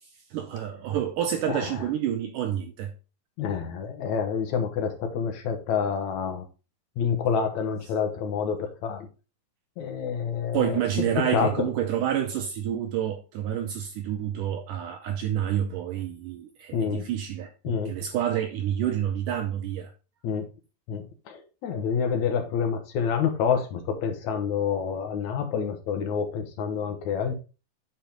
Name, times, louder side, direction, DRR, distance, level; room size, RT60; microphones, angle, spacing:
voice 1, 0.0-2.9 10.5-19.9, right 10 dB, 75° right, 2.0 m, -28 dB
voice 2, 3.4-6.5 7.0-9.1 9.8-11.1 11.3-11.7 16.7-17.1 17.6-18.0 20.2-20.5 20.9-27.3, left 6 dB, 60° left, 2.1 m, -28 dB
8.6 x 5.1 x 3.8 m
omnidirectional pair, 4.5 m